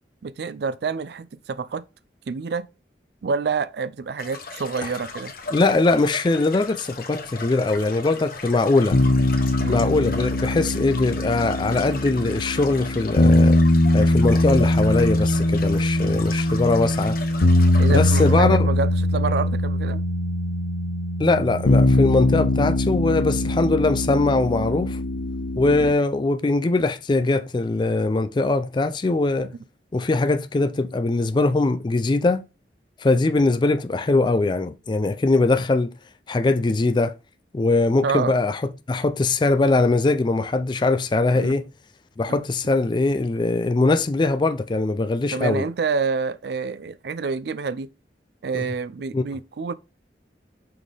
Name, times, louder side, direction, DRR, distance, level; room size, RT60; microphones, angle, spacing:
voice 1, 0.2-1.8 2.3-2.7 3.2-5.3 9.6-9.8 16.0-16.2 17.8-20.0 25.7-25.9 38.0-38.3 41.3-41.5 42.3-42.4 45.3-47.9 48.4-49.7, right 5 dB, 65° right, 0.4 m, -27 dB
sound 1, 4.2-18.4, left 4 dB, 55° left, 1.1 m, -37 dB
voice 2, 5.5-9.0 9.7-13.6 13.9-17.2 17.9-18.7 21.2-25.0 25.6-29.5 29.9-32.4 33.0-35.9 36.3-37.1 37.5-41.6 42.2-45.6 48.5-48.6 49.1-49.2, left 3 dB, 25° left, 0.4 m, -21 dB
sound 2, 8.9-25.9, left 1 dB, 75° left, 0.6 m, -21 dB
6.1 x 3.6 x 4.9 m
head